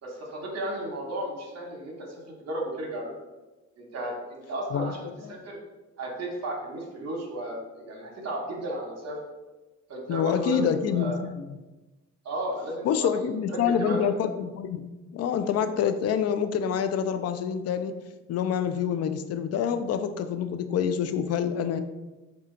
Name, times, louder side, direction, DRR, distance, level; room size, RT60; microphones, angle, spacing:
voice 1, 0.0-2.1 2.4-3.1 3.8-5.6 6.0-9.2 9.9-11.2 12.2-14.1, right 1 dB, 55° right, -1 dB, 1.0 m, -34 dB
voice 2, 4.7-5.3 10.1-11.6 12.8-14.8 15.1-18.0 18.3-21.8, left 8 dB, 55° left, 10 dB, 0.4 m, -27 dB
4.2 x 2.4 x 3.7 m, 1.1 s
cardioid pair, 90°, 30 cm